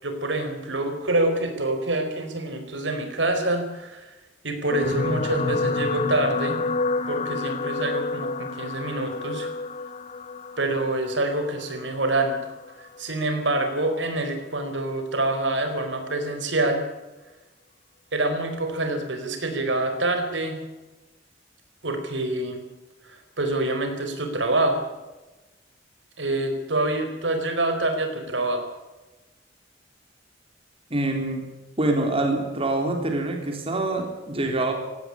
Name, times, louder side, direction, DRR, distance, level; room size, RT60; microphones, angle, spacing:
voice 1, 0.0-4.1 4.4-6.6 7.1-9.5 10.6-12.5 12.8-16.8 18.1-20.6 21.8-22.6 23.0-24.8 26.2-28.6, right 2 dB, 80° right, 6 dB, 4.4 m, -26 dB
sound 1, 4.7-13.2 13.9-14.2 14.4-14.5, left 3 dB, 35° left, 0.8 m, -29 dB
voice 2, 30.9-31.4 31.8-34.7, right 2 dB, 30° right, 3 dB, 3.7 m, -25 dB
18.0 x 17.0 x 8.8 m, 1.1 s
head